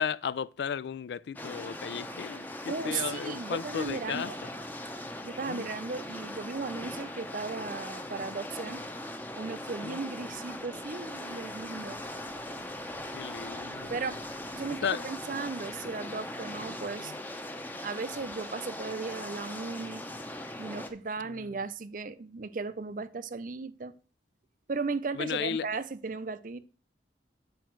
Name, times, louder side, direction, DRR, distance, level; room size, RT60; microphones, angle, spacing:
voice 1, 0.0-4.3 5.5-5.7 9.8-10.0 13.1-13.9 14.8-15.0 17.0-17.1 25.1-25.7, left 7 dB, 65° left, 0.3 m, -34 dB
sound 1, 1.4-20.9, left 1 dB, 10° left, 0.7 m, -40 dB
voice 2, 2.7-4.4 5.2-8.8 9.4-12.0 13.9-14.2 14.5-17.1 17.8-20.0 20.6-23.9 24.7-26.6, right 4 dB, 50° right, 0.5 m, -36 dB
sound 2, 9.8-15.0, right 2 dB, 75° right, 0.9 m, -58 dB
9.3 x 5.0 x 4.5 m
head